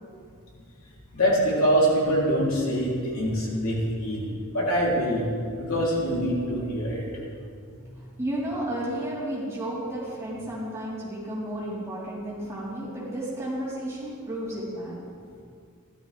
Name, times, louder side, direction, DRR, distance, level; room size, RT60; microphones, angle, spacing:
voice 1, 1.1-4.3 4.5-5.3 5.7-7.1, equal, 70° left, -5 dB, 3.3 m, -24 dB
voice 2, 8.0-15.0, right 1 dB, 15° right, -9 dB, 4.0 m, -32 dB
16.0 x 12.5 x 3.5 m, 2.3 s
head